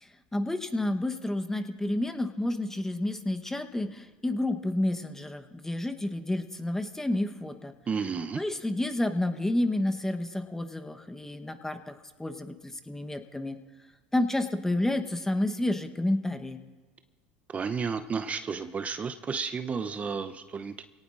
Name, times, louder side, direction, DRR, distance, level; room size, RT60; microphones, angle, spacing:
voice 1, 0.3-7.7 8.3-13.6 14.1-16.6, left 1 dB, 10° left, 7 dB, 1.0 m, -30 dB
voice 2, 7.9-8.4 17.5-20.8, right 5 dB, 30° right, 9 dB, 0.6 m, -32 dB
26.0 x 18.0 x 2.5 m, 1.3 s
hypercardioid pair, 85°, 5 cm